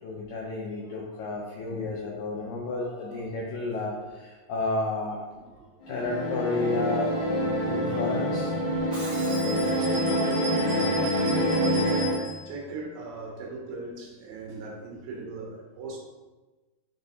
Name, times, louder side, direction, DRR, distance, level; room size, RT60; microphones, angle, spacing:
voice 1, 0.0-5.2 5.9-7.1 7.6-8.5, left 2 dB, 85° left, -2 dB, 1.9 m, -31 dB
sound 1, 5.8-12.2, equal, 60° left, 2.4 m, -26 dB
Shatter, 8.7-9.8, right 1 dB, 40° right, 2.4 m, -41 dB
sound 2, 9.1-12.5, right 1 dB, 65° right, 2.1 m, -37 dB
voice 2, 9.3-16.0, right 3 dB, 85° right, -1 dB, 3.3 m, -40 dB
10.0 x 3.5 x 2.7 m, 1.2 s
omnidirectional pair, 4.8 m